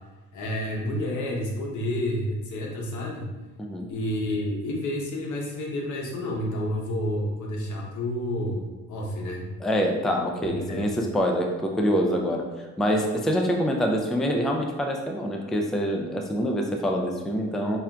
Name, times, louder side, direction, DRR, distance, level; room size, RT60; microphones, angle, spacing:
voice 1, 0.3-3.3 3.9-9.4 10.7-11.0, left 1 dB, 75° left, -1 dB, 0.9 m, -30 dB
voice 2, 3.6-3.9 9.6-12.5 12.8-17.8, equal, ahead, 2 dB, 0.3 m, -25 dB
5.5 x 2.4 x 2.2 m, 1.2 s
cardioid pair, 90°, 30 cm